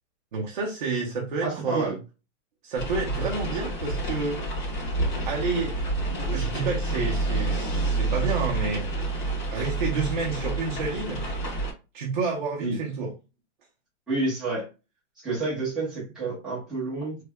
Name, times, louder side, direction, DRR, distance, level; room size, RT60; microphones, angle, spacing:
voice 1, 0.3-2.0 2.6-4.4 5.2-8.9 9.5-11.3 11.9-13.1, right 4 dB, 40° right, 0.7 m, -29 dB
voice 2, 1.4-2.0 12.6-12.8 14.1-14.7 15.2-17.2, right 3 dB, ahead, 0.7 m, -29 dB
sound 1, 2.8-11.7, right 2 dB, 35° left, 1.7 m, -29 dB
3.3 x 3.2 x 2.2 m
hypercardioid pair, 180°, 37 cm